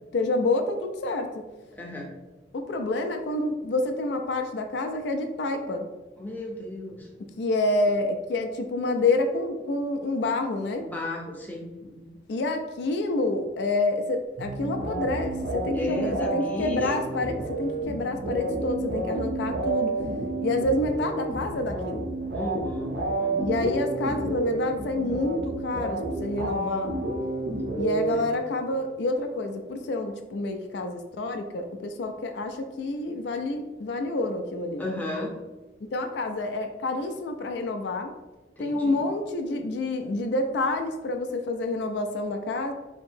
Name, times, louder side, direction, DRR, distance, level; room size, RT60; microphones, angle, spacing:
voice 1, 0.1-1.4 2.5-5.9 7.4-10.9 12.3-19.9 20.4-22.1 23.4-27.0 27.7-34.8 35.8-38.1 38.6-42.7, left 2 dB, 65° left, 5 dB, 0.4 m, -28 dB
voice 2, 1.7-2.1 6.2-7.1 10.8-12.2 15.7-17.2 20.4-20.7 22.3-23.5 28.1-28.3 34.8-35.3 38.6-39.0, left 2 dB, 10° left, -1 dB, 0.5 m, -35 dB
sound 1, 14.4-28.7, right 2 dB, 75° right, 0.7 m, -30 dB
2.8 x 2.7 x 4.3 m, 1.2 s
head